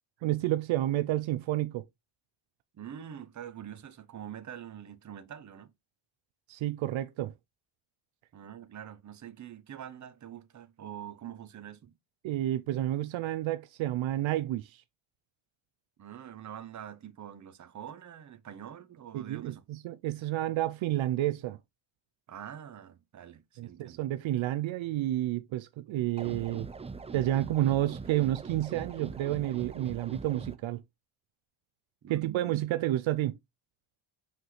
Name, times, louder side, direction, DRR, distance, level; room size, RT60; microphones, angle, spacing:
voice 1, 0.2-1.8 6.5-7.3 12.2-14.8 19.1-21.6 23.6-26.7 27.1-30.8 32.1-33.3, right 14 dB, 75° right, 0.6 m, -30 dB
voice 2, 2.7-5.7 8.3-11.9 16.0-19.6 22.3-24.0 32.0-32.6, right 9 dB, 35° right, 0.8 m, -45 dB
sound 1, 26.2-30.6, right 4 dB, 15° right, 0.3 m, -42 dB
5.9 x 5.4 x 3.2 m
cardioid pair, 155°, 48 cm